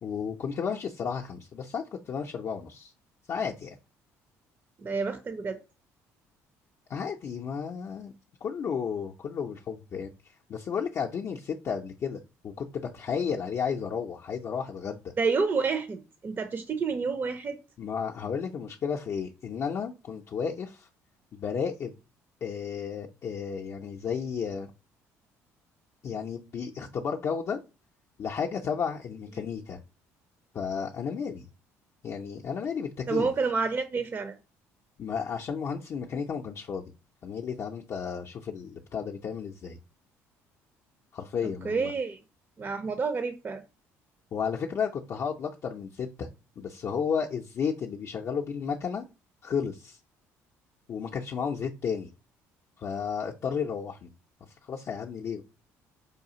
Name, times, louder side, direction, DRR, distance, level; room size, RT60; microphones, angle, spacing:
voice 1, 0.0-2.9 3.3-3.8 6.9-8.1 8.4-10.1 10.5-15.0 17.8-20.9 21.3-21.9 22.4-24.7 26.0-27.6 28.2-29.8 30.5-31.5 32.0-33.3 35.0-36.9 37.2-39.8 41.1-41.9 44.3-46.3 46.6-49.1 49.4-50.0 50.9-52.1 52.8-54.1 54.6-55.4, left 6 dB, 50° left, 0.5 m, -33 dB
voice 2, 4.8-5.6 15.2-17.6 33.1-34.3 41.6-42.2 42.6-43.6, right 4 dB, 35° right, 0.5 m, -29 dB
4.9 x 2.4 x 2.8 m
supercardioid pair, 80°, 6 cm